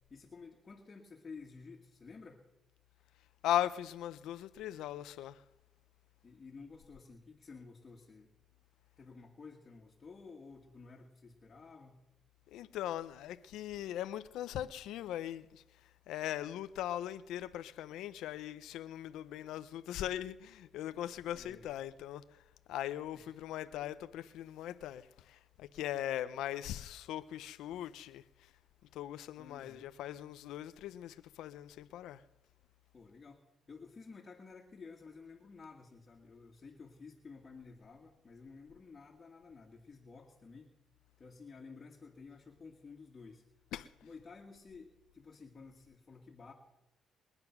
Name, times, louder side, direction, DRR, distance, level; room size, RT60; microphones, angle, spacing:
voice 1, 0.0-2.4 6.2-8.3 9.0-12.0 21.3-21.7 23.1-23.3 29.4-29.9 32.9-40.7 41.2-43.4 44.0-46.5, left 4 dB, 35° left, 2.0 m, -53 dB
voice 2, 3.4-5.4 12.5-15.6 16.1-22.4 22.7-28.5 28.9-32.2 43.7-43.9, left 12 dB, 90° left, 0.5 m, -39 dB
22.0 x 9.8 x 5.9 m
cardioid pair, 90°, 0 cm